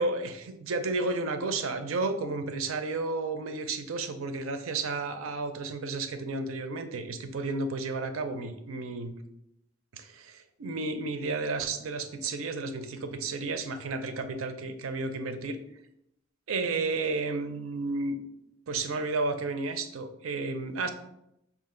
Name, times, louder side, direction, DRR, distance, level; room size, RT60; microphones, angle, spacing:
voice 1, 0.0-9.1 9.9-15.6 16.5-18.2 18.7-20.9, right 3 dB, 80° right, 9 dB, 0.5 m, -32 dB
5.8 x 2.4 x 3.7 m, 0.81 s
head